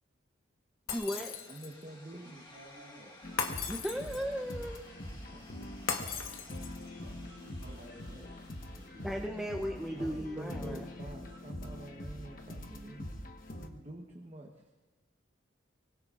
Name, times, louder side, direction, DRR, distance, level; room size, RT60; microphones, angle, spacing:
Shatter, 0.9-1.8 3.4-4.4 5.9-6.9, left 6 dB, 80° left, 1.3 m, -37 dB
voice 1, 0.9-1.4 3.7-4.8 9.0-10.9, equal, 5° right, -1 dB, 0.6 m, -36 dB
sound 1, 1.0-11.0, left 2 dB, 20° left, 1.8 m, -58 dB
voice 2, 1.5-2.5 5.0-5.7 7.0-7.3 9.9-13.1 13.6-14.5, right 1 dB, 30° right, 0 dB, 1.0 m, -47 dB
voice 3, 2.2-3.1 7.2-8.3 8.6-9.4, equal, 55° right, -7 dB, 7.6 m, -53 dB
sound 2, 3.2-13.7, left 1 dB, 40° left, 1.2 m, -44 dB
24.5 x 23.5 x 2.5 m, 1.2 s
head